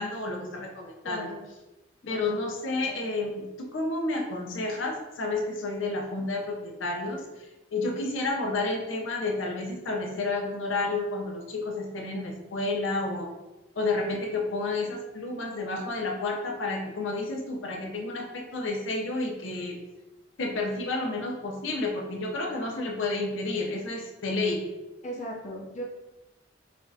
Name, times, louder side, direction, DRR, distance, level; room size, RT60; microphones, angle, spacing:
voice 1, 0.0-1.3 2.1-13.3 13.8-19.8 20.4-24.6, left 2 dB, 85° left, 1 dB, 0.7 m, -30 dB
voice 2, 1.0-1.4 2.0-2.3 25.0-25.8, equal, 40° left, -2 dB, 0.6 m, -37 dB
5.1 x 2.5 x 2.7 m, 1.1 s
head